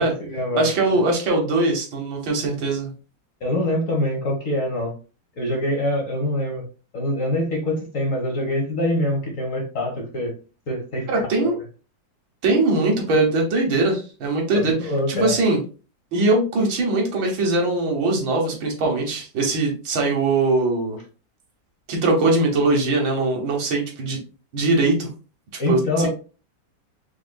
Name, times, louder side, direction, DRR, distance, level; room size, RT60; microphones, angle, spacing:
voice 1, 0.0-0.7 3.4-4.9 5.4-6.6 6.9-10.3 10.7-11.5 14.5-15.4 25.6-26.1, left 1 dB, 45° left, -1 dB, 1.4 m, -24 dB
voice 2, 0.6-2.9 11.1-11.5 12.4-15.6 16.1-21.0 21.9-24.2 24.5-25.1 25.7-26.1, right 2 dB, 80° right, 0 dB, 1.9 m, -21 dB
4.8 x 3.4 x 2.2 m, 0.35 s
omnidirectional pair, 2.1 m